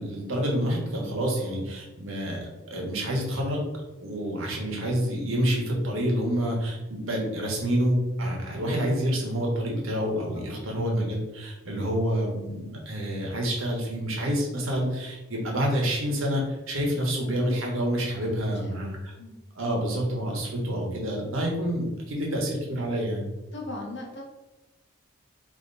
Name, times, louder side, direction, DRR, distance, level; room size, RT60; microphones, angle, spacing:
voice 1, 0.0-3.6 4.0-19.1 19.5-23.3, equal, 75° right, -1 dB, 1.2 m, -28 dB
voice 2, 10.3-10.7 18.5-18.9 19.2-19.4 23.5-24.2, left 2 dB, 55° left, -1 dB, 1.1 m, -39 dB
4.2 x 2.9 x 4.0 m, 1.1 s
head